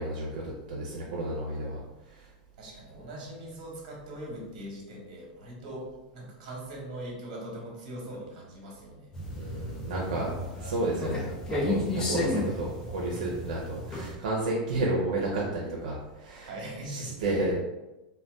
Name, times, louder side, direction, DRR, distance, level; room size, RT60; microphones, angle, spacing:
voice 1, 0.0-1.8 2.1-2.3 9.3-10.3 10.6-16.5 16.9-17.6, right 2 dB, 80° right, -3 dB, 0.6 m, -31 dB
voice 2, 2.6-5.9 6.1-9.1 16.4-17.4, right 1 dB, 55° right, -2 dB, 1.2 m, -41 dB
sound 1, 9.1-14.1, left 1 dB, 15° left, 0.4 m, -33 dB
3.8 x 2.2 x 2.3 m, 1.0 s
supercardioid pair, 160°, 4 cm